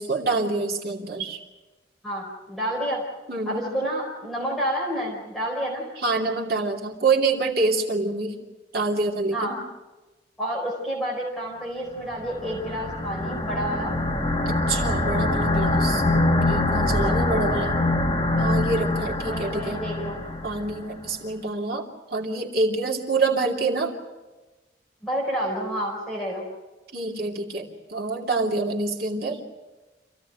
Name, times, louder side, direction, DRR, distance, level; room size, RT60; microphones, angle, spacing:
voice 1, 0.0-1.4 3.3-3.7 6.0-8.4 8.7-9.6 14.4-17.8 18.4-19.8 20.4-23.9 26.9-29.4, right 3 dB, 55° right, -1 dB, 2.8 m, -26 dB
voice 2, 2.0-3.0 3.4-5.9 9.3-9.6 10.4-13.9 17.0-17.2 19.3-20.1 25.0-26.5, equal, ahead, -4 dB, 4.5 m, -29 dB
Distant Vibrations, 12.2-20.8, left 2 dB, 20° left, 2.4 m, -24 dB
27.0 x 16.5 x 9.0 m, 1.2 s
head